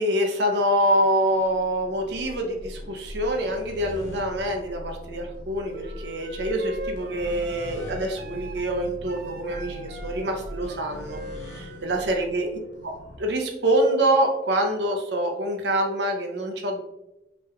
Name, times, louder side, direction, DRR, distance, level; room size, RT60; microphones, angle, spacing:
voice 1, 0.0-12.5 12.8-12.9 13.2-16.8, right 1 dB, 65° right, 3 dB, 0.8 m, -25 dB
sound 1, 0.5-13.2, equal, 85° left, 0.9 m, -41 dB
sound 2, 5.7-12.2, right 2 dB, 50° right, 0.4 m, -41 dB
5.9 x 3.1 x 2.4 m, 0.97 s
head